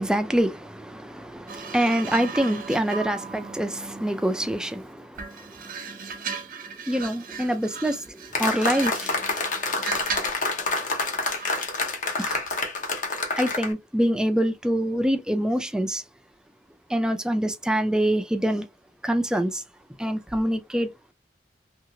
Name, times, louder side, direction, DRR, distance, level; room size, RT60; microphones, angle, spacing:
voice 1, 0.0-5.6 5.9-6.0 6.9-9.2 12.2-12.4 13.4-16.0 16.9-18.7 19.0-19.6 20.0-20.9, equal, 5° right, 0.3 m, -25 dB
sound 1, 1.5-4.7 5.1-10.4 11.4-11.6, right 5 dB, 50° right, 0.6 m, -37 dB
sound 2, 8.3-13.7, left 3 dB, 45° left, 0.8 m, -27 dB
2.8 x 2.7 x 2.7 m
head